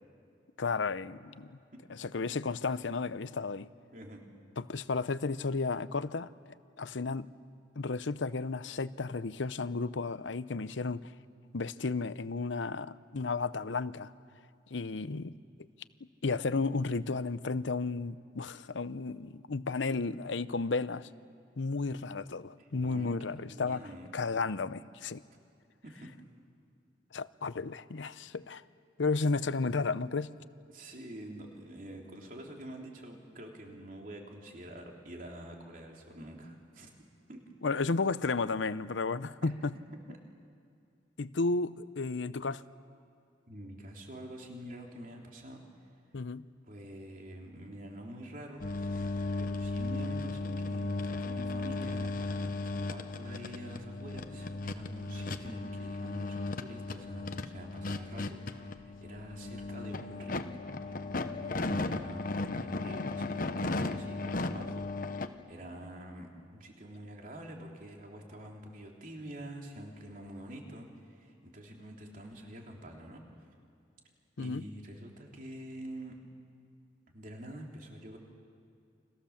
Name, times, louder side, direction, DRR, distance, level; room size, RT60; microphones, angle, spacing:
voice 1, 0.6-1.6 1.9-3.7 4.6-7.3 7.8-11.1 11.5-14.1 14.7-15.3 16.2-21.1 21.6-23.9 24.1-25.2 27.1-28.6 29.0-30.4 37.6-39.7 41.2-42.6 46.1-46.4 74.4-74.6, left 4 dB, 85° left, 15 dB, 0.7 m, -33 dB
voice 2, 3.9-4.2 22.6-24.1 25.3-25.4 25.8-26.1 30.7-37.4 39.4-39.5 43.5-45.6 46.7-48.7 49.4-61.0 61.4-62.3 62.5-64.8 65.3-73.2 74.4-76.1 77.1-78.2, right 1 dB, 45° right, 1 dB, 3.3 m, -47 dB
sound 1, 48.6-65.3, left 2 dB, 50° left, 1.0 m, -36 dB
30.0 x 25.0 x 7.3 m, 2.4 s
head